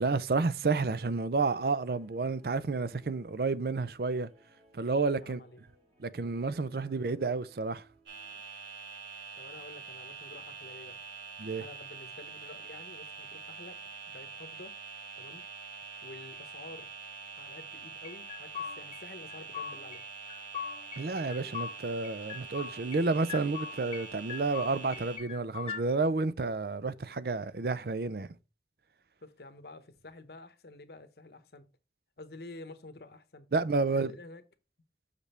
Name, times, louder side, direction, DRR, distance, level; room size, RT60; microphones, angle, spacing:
voice 1, 0.0-4.3 4.7-5.4 6.0-7.8 11.4-11.6 21.0-28.3 33.5-34.1, right 3 dB, 55° right, 0.5 m, -30 dB
Guitar, 1.8-8.4, right 2 dB, 35° right, 2.3 m, -62 dB
voice 2, 5.0-5.6 6.9-7.0 9.4-11.0 11.6-13.8 14.1-14.8 15.2-15.4 16.0-16.9 17.4-20.0 29.2-31.7 32.2-33.5 33.9-34.4, left 2 dB, 60° left, 0.9 m, -49 dB
sound 1, 8.0-25.2, right 5 dB, 85° right, 2.6 m, -45 dB
sound 2, 18.0-19.0 19.3-20.0 20.3-21.7 22.0-23.0 23.3-24.0 24.3-25.8, left 7 dB, 30° left, 1.0 m, -40 dB
6.6 x 5.2 x 4.3 m
head